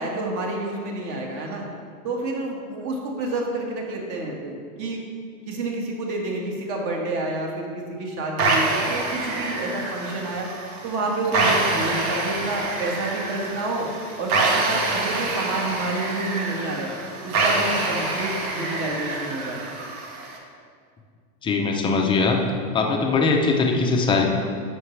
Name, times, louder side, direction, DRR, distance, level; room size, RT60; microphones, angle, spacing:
voice 1, 0.0-1.7 2.0-5.0 5.5-10.5 10.8-13.9 14.2-16.9 17.2-19.7, right 2 dB, 40° right, 0 dB, 1.8 m, -29 dB
sound 1, 8.4-20.4, right 3 dB, 70° right, 1.7 m, -26 dB
voice 2, 21.4-22.4 22.7-24.2, left 4 dB, 10° left, 1 dB, 0.6 m, -21 dB
11.0 x 7.2 x 3.3 m, 2.1 s
supercardioid pair, 140°, 45 cm